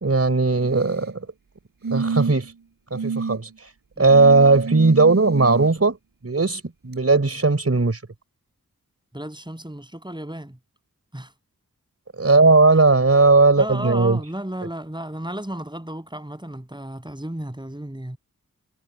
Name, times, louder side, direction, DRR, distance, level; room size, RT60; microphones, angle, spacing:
voice 1, 0.0-1.1 1.9-2.5 2.9-3.5 4.0-6.0 6.2-8.0 12.2-14.2, right 3 dB, 45° right, 4.0 m, -17 dB
sound 1, 0.6-1.1 1.8-2.5 2.9-3.4 4.1-5.7 6.9-7.0, right 5 dB, 85° right, 6.3 m, -29 dB
voice 2, 9.1-10.6 11.1-11.3 13.6-18.2, right 1 dB, 15° right, 6.8 m, -33 dB
cardioid pair, 40°, 33 cm